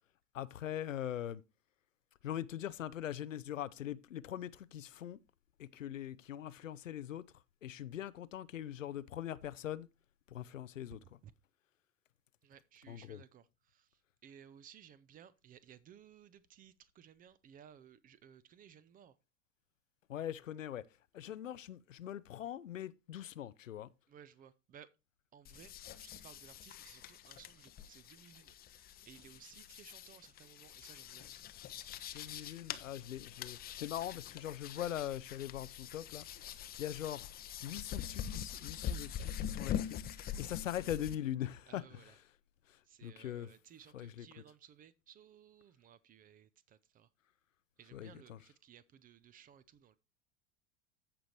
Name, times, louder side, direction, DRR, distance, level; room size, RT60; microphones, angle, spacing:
voice 1, 0.3-1.4 2.2-5.2 5.6-7.2 7.6-9.9 10.3-11.0 12.9-13.2 20.1-20.8 21.1-23.9 32.1-36.2 36.8-37.3 37.6-40.0 40.4-42.1 42.7-43.5 43.9-44.3 47.9-48.4, left 11 dB, 80° left, 0.6 m, -42 dB
voice 2, 10.9-11.3 12.4-19.1 24.1-24.9 25.3-31.2 41.7-42.2 42.9-47.1 47.8-50.0, right 9 dB, 20° right, 0.5 m, -59 dB
sound 1, 25.4-41.2, left 9 dB, 25° left, 0.6 m, -44 dB
14.5 x 5.0 x 3.0 m
figure-of-eight pair, 80°, 38 cm